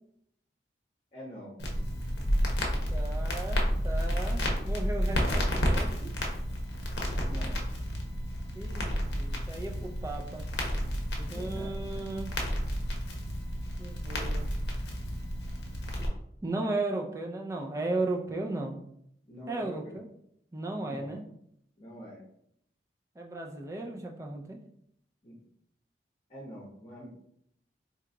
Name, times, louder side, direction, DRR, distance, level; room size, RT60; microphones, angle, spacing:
voice 1, 1.1-1.6 7.1-7.6 11.2-12.1 19.3-20.0 20.8-21.2 21.8-22.2 25.2-25.4 26.3-27.1, equal, 35° left, -6 dB, 0.8 m, -45 dB
Crackle, 1.6-16.1, equal, 70° left, 0.7 m, -31 dB
voice 2, 2.9-6.1 8.5-10.5 11.3-12.3 13.8-14.6 16.4-18.8 19.5-20.1 20.5-21.2 23.2-24.6, right 2 dB, 15° right, 2 dB, 0.3 m, -35 dB
2.9 x 2.3 x 3.7 m, 0.72 s
head